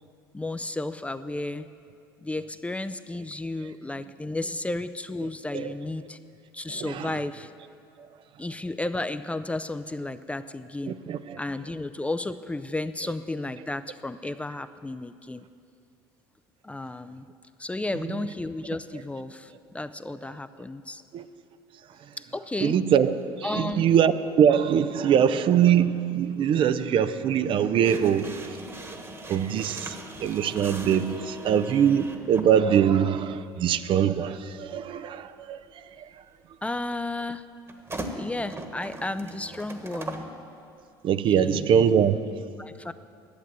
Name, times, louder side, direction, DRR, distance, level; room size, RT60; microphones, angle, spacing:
voice 1, 0.3-1.7 2.2-6.2 6.5-7.5 8.4-11.0 11.4-15.4 16.6-17.3 17.6-21.0 22.2-22.8 23.4-23.9 36.6-37.4 38.1-40.3 41.3-41.7 42.6-42.9, left 2 dB, 10° left, 11 dB, 0.5 m, -33 dB
voice 2, 6.7-7.2 8.0-8.1 10.9-11.4 18.0-18.2 21.1-21.3 21.9-22.2 22.6-28.8 29.3-36.2 41.0-42.5, right 8 dB, 50° right, 12 dB, 0.5 m, -23 dB
sound 1, 27.8-32.5 33.7-33.8 37.7-40.3, right 2 dB, 25° right, 1.4 m, -39 dB
11.5 x 8.0 x 7.4 m, 2.4 s
hypercardioid pair, 65°, 12 cm